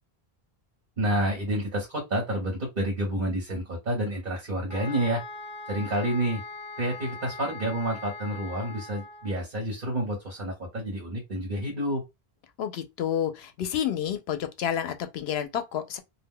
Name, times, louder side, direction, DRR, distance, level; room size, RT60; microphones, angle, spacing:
voice 1, 1.0-5.2 5.7-6.4 6.8-12.0, right 1 dB, 50° right, 1.1 m, -29 dB
sound 1, 4.7-9.4, left 3 dB, 45° left, 1.1 m, -41 dB
voice 2, 12.6-16.0, left 9 dB, 90° left, 0.8 m, -30 dB
2.4 x 2.1 x 3.6 m
omnidirectional pair, 1.0 m